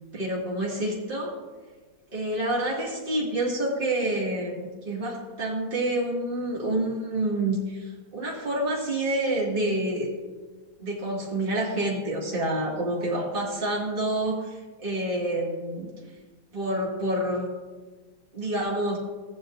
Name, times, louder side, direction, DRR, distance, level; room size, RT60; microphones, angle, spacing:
voice 1, 0.1-1.3 2.1-10.1 10.8-14.5 14.8-15.9 16.5-17.5 18.3-19.0, right 1 dB, 30° right, -5 dB, 2.3 m, -28 dB
16.0 x 8.0 x 2.6 m, 1.3 s
omnidirectional pair, 2.0 m